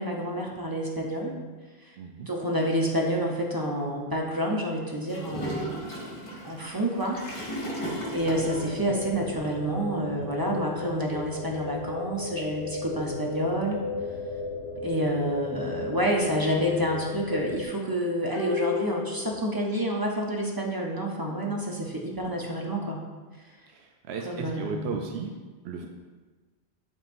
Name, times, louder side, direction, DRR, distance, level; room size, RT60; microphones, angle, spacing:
voice 1, 0.0-1.3 1.8-7.2 8.1-13.8 14.8-23.0 23.5-23.6 24.2-24.9, equal, 25° right, -1 dB, 0.7 m, -29 dB
voice 2, 2.0-2.3 23.7-25.3 25.6-25.9, right 5 dB, 75° right, 2 dB, 0.8 m, -35 dB
Gurgling / Toilet flush, 5.1-8.8, equal, 50° left, 1.5 m, -35 dB
sound 1, 8.1-17.7, left 3 dB, 85° left, 1.1 m, -35 dB
sound 2, 18.3-20.0 20.3-20.4, left 10 dB, 30° left, 0.8 m, -35 dB
10.5 x 3.7 x 2.6 m, 1.3 s
omnidirectional pair, 1.1 m